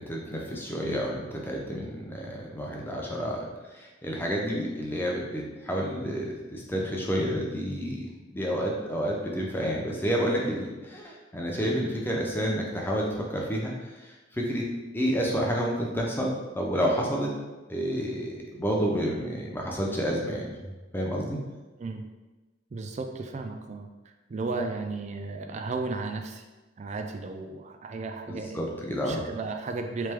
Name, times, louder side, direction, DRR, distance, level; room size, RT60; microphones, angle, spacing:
voice 1, 0.0-14.6 14.9-17.3 17.7-21.4 28.3-29.2, equal, 10° left, -2 dB, 0.6 m, -30 dB
voice 2, 21.8-22.1 22.7-26.4 26.8-28.6 29.0-30.1, right 3 dB, 35° right, 5 dB, 0.3 m, -34 dB
3.3 x 3.3 x 3.5 m, 1.2 s
head